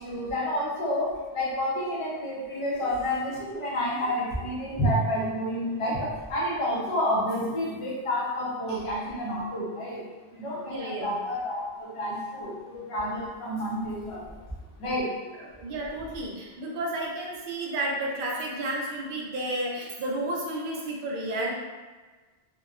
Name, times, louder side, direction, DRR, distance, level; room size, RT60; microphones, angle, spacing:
voice 1, 0.0-10.0 10.3-14.3 14.8-15.2, equal, 35° left, -7 dB, 0.6 m, -29 dB
voice 2, 10.6-11.2 15.3-21.5, right 1 dB, 60° right, -2 dB, 0.7 m, -32 dB
2.9 x 2.1 x 2.3 m, 1.3 s
omnidirectional pair, 1.1 m